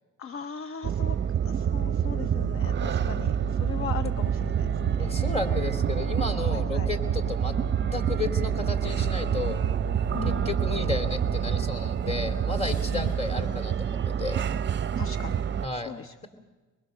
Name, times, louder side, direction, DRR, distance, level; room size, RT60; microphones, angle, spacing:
voice 1, 0.2-1.2 1.4-5.3 6.5-6.9 10.1-10.5 12.9-13.1 15.0-15.4 15.7-16.2, left 7 dB, 45° left, 10 dB, 0.7 m, -38 dB
sound 1, 0.8-15.7, right 8 dB, 35° right, 0.6 m, -27 dB
sound 2, 1.6-11.7, right 1 dB, 90° left, 7.4 m, -41 dB
voice 2, 2.9-3.5 5.0-7.5 7.9-9.6 10.2-14.5 15.6-15.9, left 3 dB, 20° left, 6 dB, 3.0 m, -33 dB
23.5 x 22.5 x 6.6 m, 1.2 s
cardioid pair, 90°, 30 cm